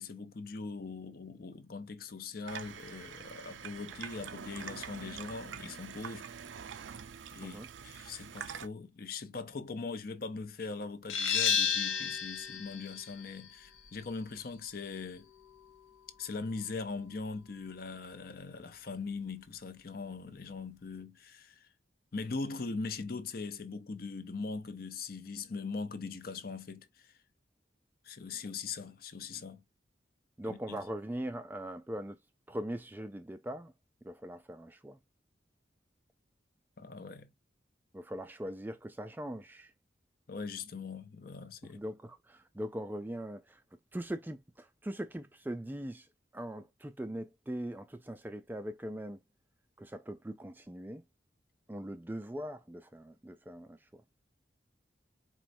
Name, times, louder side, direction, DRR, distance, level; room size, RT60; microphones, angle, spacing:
voice 1, 0.0-6.3 7.3-7.6 7.8-15.3 16.2-21.7 22.1-27.1 28.0-29.6 30.4-30.8 36.8-37.3 40.3-41.8, left 4 dB, 50° left, 0.6 m, -41 dB
Water tap faucet / Sink (filling or washing), 2.5-8.7, right 7 dB, 80° right, 0.5 m, -45 dB
sound 1, 11.1-16.5, left 7 dB, 80° left, 0.8 m, -34 dB
voice 2, 30.4-32.2 32.5-33.7 34.0-35.0 37.9-39.7 41.7-43.6 43.9-46.1 46.3-49.2 49.8-51.0 51.7-54.0, right 1 dB, 10° right, 0.3 m, -41 dB
4.6 x 3.0 x 2.6 m
head